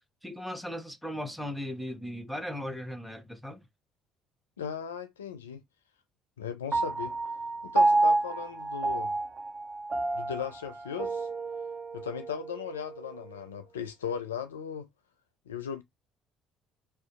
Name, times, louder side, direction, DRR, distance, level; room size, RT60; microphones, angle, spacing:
voice 1, 0.2-3.6, left 1 dB, ahead, 0.7 m, -37 dB
voice 2, 4.6-5.6 6.4-7.1 7.6-9.1 10.1-11.3 11.9-14.9 15.5-15.8, left 7 dB, 85° left, 0.3 m, -37 dB
Piano, 6.7-13.4, right 2 dB, 35° right, 0.4 m, -29 dB
2.6 x 2.2 x 2.2 m
figure-of-eight pair, 50°, 0 cm